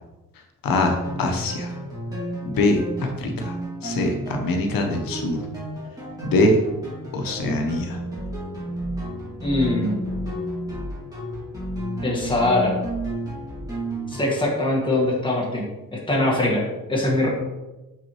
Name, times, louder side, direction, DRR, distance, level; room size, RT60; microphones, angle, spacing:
voice 1, 0.6-1.7 2.4-3.5 3.8-5.4 6.2-6.6 7.1-8.0, left 2 dB, 80° left, 4 dB, 0.9 m, -23 dB
sound 1, 0.8-14.5, right 1 dB, 10° right, 1.9 m, -32 dB
voice 2, 9.4-10.0 12.0-12.7 14.1-15.7 16.1-17.3, left 1 dB, 15° left, -3 dB, 1.4 m, -22 dB
5.9 x 5.4 x 3.0 m, 1.1 s
wide cardioid pair, 155°, 34 cm